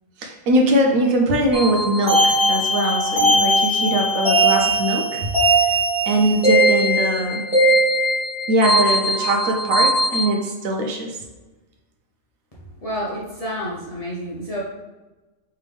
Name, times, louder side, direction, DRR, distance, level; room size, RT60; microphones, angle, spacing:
voice 1, 0.2-5.2 6.1-7.4 8.5-11.1, right 1 dB, 75° right, 2 dB, 1.1 m, -21 dB
sound 1, 1.5-10.3, right 1 dB, 5° right, 1.3 m, -19 dB
voice 2, 12.8-14.6, equal, 35° left, -6 dB, 0.7 m, -29 dB
3.5 x 3.3 x 3.3 m, 1.1 s
omnidirectional pair, 1.5 m